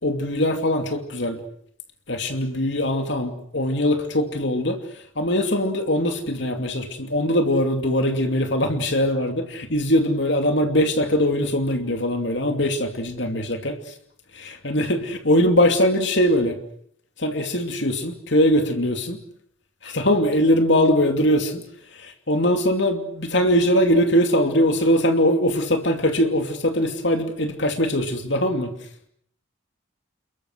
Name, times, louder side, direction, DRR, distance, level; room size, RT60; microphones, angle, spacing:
voice 1, 0.0-1.4 2.1-4.8 5.2-13.7 14.3-16.6 17.2-19.2 19.8-21.6 21.9-28.7, equal, 60° left, 6 dB, 2.7 m, -21 dB
29.5 x 22.0 x 6.4 m, 0.66 s
head